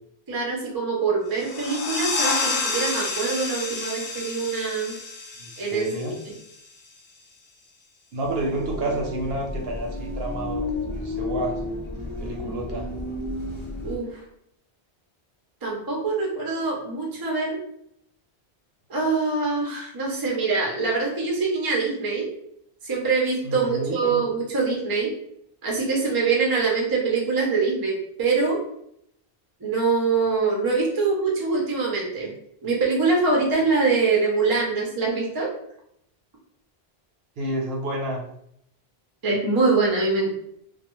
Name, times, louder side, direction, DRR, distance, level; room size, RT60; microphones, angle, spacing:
voice 1, 0.3-4.9 5.6-5.9 13.8-14.2 15.6-17.6 18.9-22.3 22.8-25.1 25.6-28.6 29.6-32.3 32.6-35.5 39.2-40.3, right 4 dB, 25° right, -2 dB, 0.5 m, -24 dB
sound 1, 1.3-6.7, left 3 dB, 80° left, 0.9 m, -29 dB
voice 2, 5.4-6.1 8.1-11.6 12.2-12.9 23.4-24.2 37.4-38.2, right 1 dB, 70° right, 0 dB, 0.8 m, -30 dB
sound 2, 8.2-14.0, left 2 dB, 35° left, 0.5 m, -32 dB
2.3 x 2.2 x 3.0 m, 0.71 s
omnidirectional pair, 1.1 m